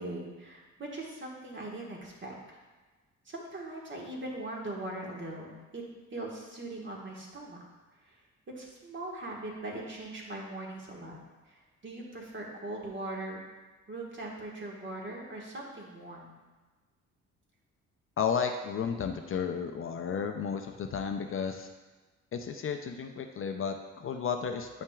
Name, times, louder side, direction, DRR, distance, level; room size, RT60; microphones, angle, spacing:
voice 1, 0.0-2.6 3.2-5.8 6.1-7.6 8.0-8.1 8.5-11.2 11.5-13.4 13.9-16.4, right 2 dB, 40° right, -2 dB, 1.6 m, -40 dB
voice 2, 18.2-21.7 22.3-24.8, left 6 dB, 45° left, 5 dB, 0.5 m, -33 dB
8.1 x 5.7 x 2.4 m, 1.3 s
cardioid pair, 90°, 30 cm